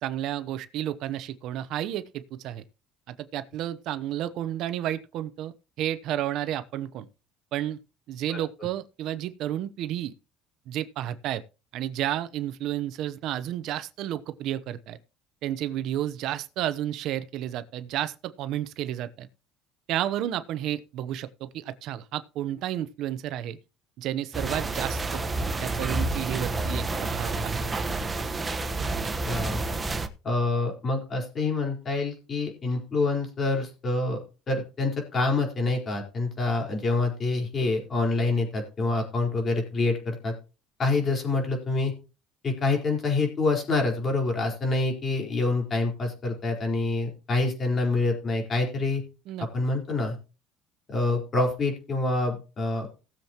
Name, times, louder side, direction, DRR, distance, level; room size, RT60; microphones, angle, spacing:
voice 1, 0.0-2.6 3.1-7.1 7.5-7.8 8.1-10.1 10.7-11.4 11.7-15.0 15.4-19.3 19.9-23.6 24.0-25.2 25.6-27.8 49.3-49.4, right 12 dB, 65° right, 0.8 m, -31 dB
sound 1, 24.3-30.1, right 2 dB, 20° right, 1.1 m, -29 dB
voice 2, 29.3-29.6 30.2-34.2 34.5-40.3 40.8-41.9 42.4-49.0 49.4-50.2 50.9-52.9, left 3 dB, 35° left, 4.4 m, -26 dB
18.0 x 7.4 x 3.0 m
cardioid pair, 125°, 0 cm